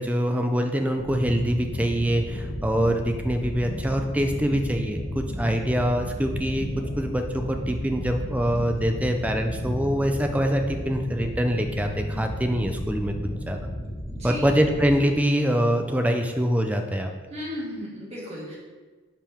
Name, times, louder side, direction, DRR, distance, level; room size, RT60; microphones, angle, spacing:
voice 1, 0.0-6.7 7.0-13.6 14.2-17.1, equal, 5° right, 4 dB, 0.4 m, -24 dB
sound 1, 1.0-14.9, equal, 60° left, 1.2 m, -33 dB
voice 2, 14.2-14.5 17.3-18.6, equal, 30° right, -6 dB, 1.9 m, -35 dB
8.8 x 4.8 x 3.6 m, 1.4 s
head